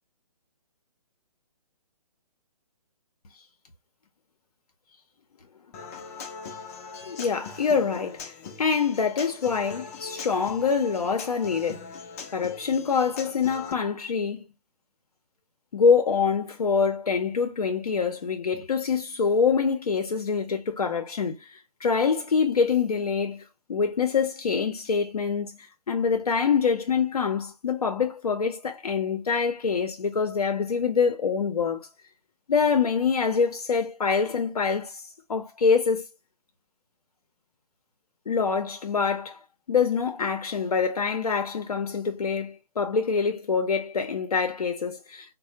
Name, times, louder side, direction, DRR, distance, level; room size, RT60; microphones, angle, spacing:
Human voice / Acoustic guitar, 5.7-13.7, left 5 dB, 25° left, 0.5 m, -41 dB
voice 1, 7.1-8.3 8.6-11.9 12.3-14.4 15.7-23.4 23.7-31.9 32.5-36.0 38.3-45.3, left 5 dB, 75° left, 0.6 m, -25 dB
3.2 x 2.1 x 2.8 m
figure-of-eight pair, 140°, 20 cm